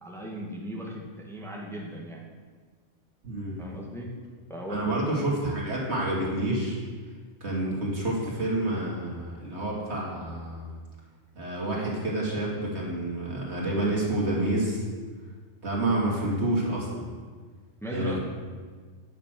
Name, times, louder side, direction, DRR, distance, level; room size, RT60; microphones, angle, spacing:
voice 1, 0.0-2.2 3.6-4.1 4.5-5.1 17.8-18.2, equal, ahead, -3 dB, 1.6 m, -37 dB
voice 2, 3.2-3.6 4.7-6.8 7.4-10.7 11.3-14.8 15.6-17.1 17.9-18.2, right 1 dB, 60° right, -4 dB, 2.8 m, -28 dB
10.0 x 6.6 x 7.6 m, 1.5 s
omnidirectional pair, 1.3 m